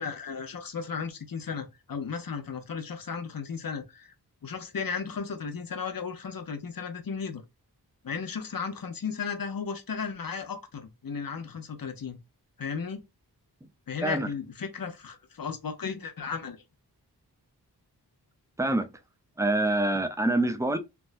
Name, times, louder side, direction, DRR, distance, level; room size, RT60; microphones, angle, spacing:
voice 1, 0.0-4.1 4.4-7.4 8.0-12.2 12.6-13.0 13.9-16.6, left 6 dB, 60° left, 0.7 m, -35 dB
voice 2, 19.4-20.8, right 2 dB, 10° right, 0.5 m, -25 dB
3.4 x 2.1 x 2.5 m
wide cardioid pair, 50°, 40 cm